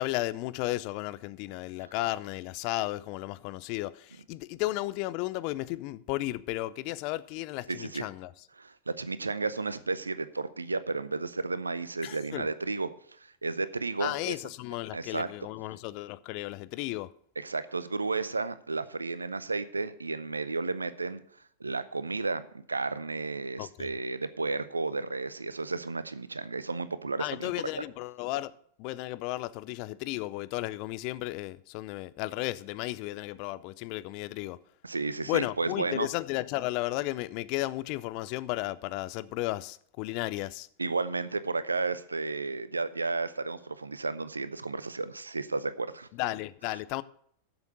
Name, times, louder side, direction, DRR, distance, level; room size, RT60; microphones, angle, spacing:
voice 1, 0.0-8.3 12.0-12.5 14.0-17.1 23.6-23.9 27.2-28.5 28.8-34.6 35.3-40.7 46.2-47.0, left 18 dB, 45° left, 0.4 m, -34 dB
voice 2, 7.7-8.1 8.6-12.9 13.2-14.3 14.9-15.3 17.4-21.2 21.6-27.5 34.8-36.1 40.8-46.1, right 3 dB, 80° right, 0.6 m, -33 dB
8.0 x 7.0 x 7.6 m
figure-of-eight pair, 90°, 0 cm